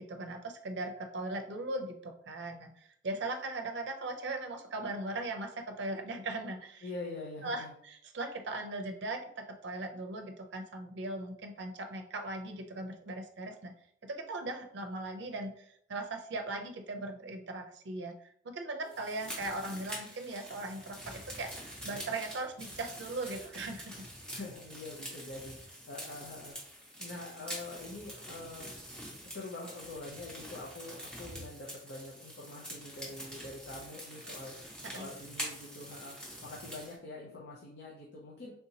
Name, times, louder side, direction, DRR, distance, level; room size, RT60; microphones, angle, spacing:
voice 1, 0.0-6.9 7.4-13.7 14.0-24.0 34.8-35.1, right 2 dB, 70° right, 4 dB, 0.5 m, -39 dB
voice 2, 6.8-7.7 24.3-28.7 29.2-34.5 34.9-38.5, left 2 dB, 65° left, -3 dB, 0.6 m, -45 dB
sound 1, 18.9-36.9, equal, 5° left, 0.8 m, -45 dB
3.4 x 2.8 x 2.7 m, 0.68 s
head